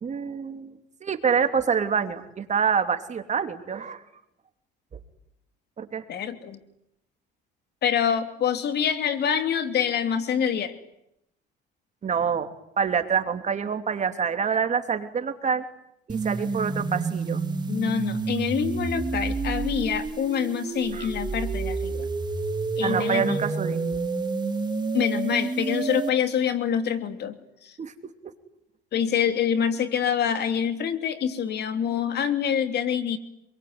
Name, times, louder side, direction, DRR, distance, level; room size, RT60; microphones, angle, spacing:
voice 1, 0.0-4.0 5.8-6.0 12.0-15.6 16.1-17.4 20.9-21.1 22.8-23.8 27.8-28.1, right 6 dB, 35° right, 7 dB, 3.1 m, -26 dB
voice 2, 6.1-6.6 7.8-10.7 17.7-22.1 22.8-23.4 24.9-27.3 27.6-27.8 28.9-33.2, left 8 dB, 60° left, 8 dB, 3.0 m, -26 dB
sound 1, 16.1-26.1, right 4 dB, 20° right, 2.6 m, -29 dB
27.0 x 22.5 x 9.7 m, 0.79 s
cardioid pair, 105°, 19 cm